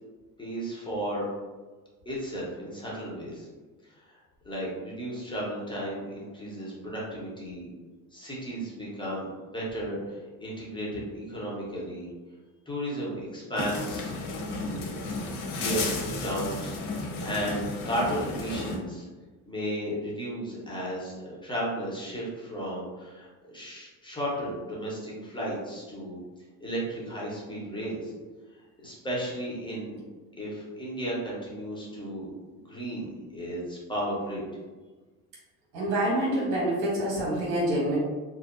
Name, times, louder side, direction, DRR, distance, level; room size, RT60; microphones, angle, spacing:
voice 1, 0.4-1.3 2.0-3.5 4.1-4.2 4.4-7.7 8.1-12.1 12.7-14.9 15.5-19.1 19.5-26.2 26.6-28.1 28.8-30.0 30.4-32.3 32.7-34.4, equal, 10° left, -5 dB, 1.0 m, -34 dB
sound 1, 13.6-18.8, left 3 dB, 50° left, 0.7 m, -33 dB
voice 2, 35.7-38.0, right 1 dB, 80° right, -6 dB, 1.2 m, -26 dB
2.7 x 2.2 x 2.5 m, 1.3 s
hypercardioid pair, 75°, 42 cm